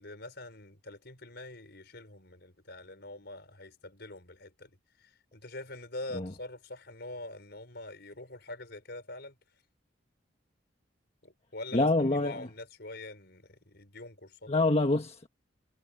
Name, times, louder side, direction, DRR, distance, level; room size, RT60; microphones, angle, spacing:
voice 1, 0.0-9.3 11.2-14.5, left 2 dB, 55° left, 5.5 m, -44 dB
voice 2, 11.7-12.5 14.5-15.3, left 2 dB, 35° left, 1.3 m, -26 dB
head